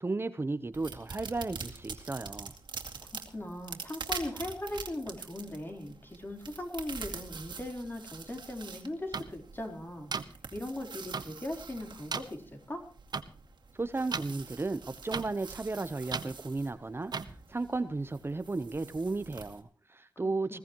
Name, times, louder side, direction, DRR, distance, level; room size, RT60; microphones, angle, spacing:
voice 1, 0.0-2.5 13.7-20.6, right 3 dB, 30° right, 11 dB, 0.8 m, -34 dB
sound 1, 0.7-19.6, right 5 dB, 85° right, 2.4 m, -45 dB
voice 2, 3.3-12.4 12.7-12.8 20.5-20.6, left 1 dB, 30° left, 3 dB, 3.9 m, -39 dB
sound 2, 9.1-9.2 10.1-10.2 11.1-11.2 12.1-12.2 13.1-13.2 14.1-14.2 15.1-15.2 16.1-16.3 17.1-17.2, right 5 dB, 65° right, 1.1 m, -33 dB
21.0 x 17.0 x 3.0 m, 0.43 s
wide cardioid pair, 90°, 8 cm